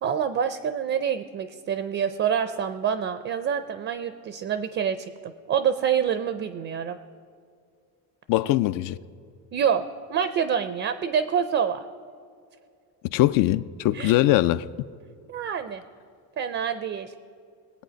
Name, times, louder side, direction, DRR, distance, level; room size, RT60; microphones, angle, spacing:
voice 1, 0.0-7.0 9.5-9.8 10.1-11.8 13.9-14.2 15.3-15.8 16.4-17.1, right 8 dB, 35° right, 0.5 m, -26 dB
voice 2, 8.3-9.0 13.1-14.7, left 15 dB, 60° left, 0.4 m, -21 dB
21.0 x 8.3 x 5.1 m
cardioid pair, 145°, 38 cm